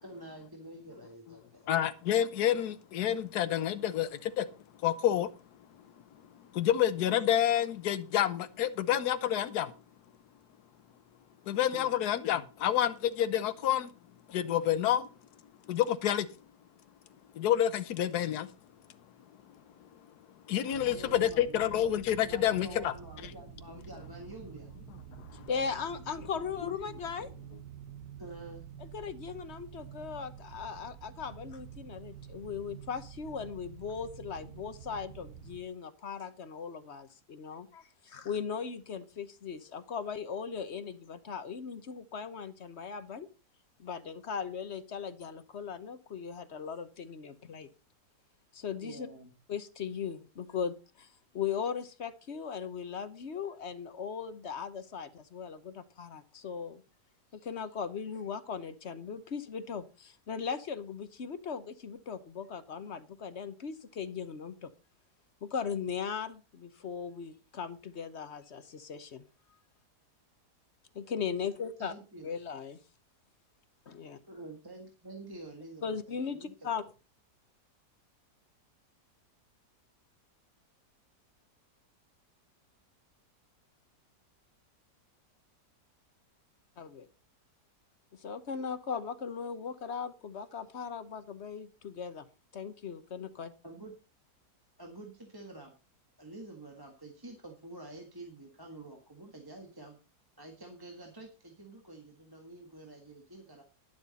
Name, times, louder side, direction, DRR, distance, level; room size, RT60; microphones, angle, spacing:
voice 1, 0.0-1.7 11.5-12.0 20.8-21.9 22.2-24.7 28.2-28.6 48.8-49.3 71.8-72.3 74.2-76.9 93.6-93.9 94.8-95.7 96.2-100.0 100.4-103.6, right 2 dB, 15° right, 1.6 m, -48 dB
voice 2, 1.7-4.5 4.8-5.3 6.5-9.7 11.5-13.9 14.3-15.1 15.7-16.3 17.3-18.5 20.5-22.9 25.2-25.5, left 11 dB, 70° left, 1.4 m, -28 dB
sound 1, 20.7-35.6, right 9 dB, 80° right, 1.6 m, -49 dB
voice 3, 25.5-27.3 28.8-43.3 43.8-47.7 48.5-49.1 49.5-56.8 57.3-64.7 65.4-69.2 70.9-71.9 72.2-72.8 73.9-74.2 75.8-76.8 86.8-87.1 88.2-92.2 92.5-93.5, left 6 dB, 45° left, 1.1 m, -38 dB
11.5 x 11.0 x 4.1 m
omnidirectional pair, 1.8 m